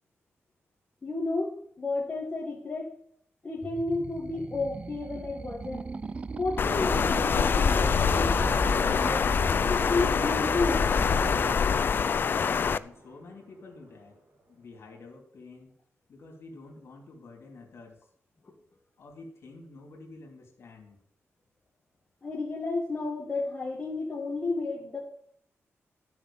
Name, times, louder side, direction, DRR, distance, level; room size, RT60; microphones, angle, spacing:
voice 1, 1.0-2.9 3.4-5.9 6.4-9.4 9.7-10.9 18.4-18.5 22.2-25.0, left 3 dB, 25° left, -3 dB, 1.8 m, -32 dB
sound 1, 3.6-11.5, right 4 dB, 25° right, 0.3 m, -37 dB
Water, 6.6-12.8, left 6 dB, 45° left, 0.4 m, -25 dB
sound 2, 8.3-14.6, right 2 dB, 50° right, 2.7 m, -48 dB
voice 2, 12.3-14.2 14.5-15.8 16.1-18.1 19.0-21.0, left 3 dB, 60° left, 1 dB, 3.1 m, -49 dB
12.5 x 6.1 x 7.2 m, 0.66 s
wide cardioid pair, 170°, 5 cm